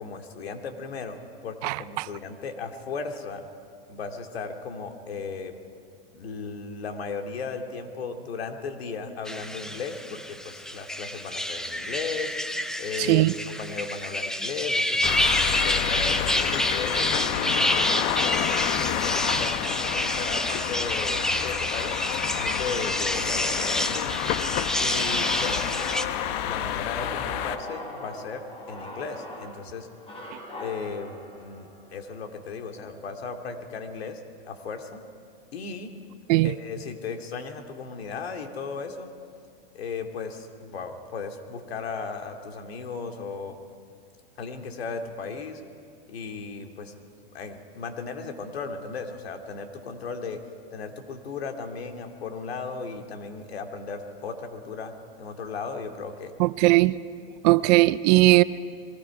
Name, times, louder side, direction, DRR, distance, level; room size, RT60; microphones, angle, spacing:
voice 1, 0.0-3.5 3.9-5.5 6.1-12.4 12.8-13.3 13.6-18.6 18.9-22.0 22.3-24.2 24.8-25.7 26.4-29.9 30.6-34.2 34.5-35.0 35.5-35.9 36.4-39.1 39.7-43.6 44.4-45.6 46.1-46.9 47.3-50.4 50.7-54.9 55.2-56.3, left 4 dB, 85° left, 2.5 m, -36 dB
sound 1, 9.3-26.1, left 1 dB, ahead, 0.6 m, -28 dB
sound 2, 15.0-27.6, left 11 dB, 45° left, 1.0 m, -29 dB
sound 3, 25.0-33.2, left 2 dB, 20° left, 3.8 m, -41 dB
voice 2, 56.4-56.9 57.4-58.4, right 20 dB, 40° right, 0.5 m, -18 dB
25.5 x 22.5 x 4.9 m
hypercardioid pair, 135°, 30 cm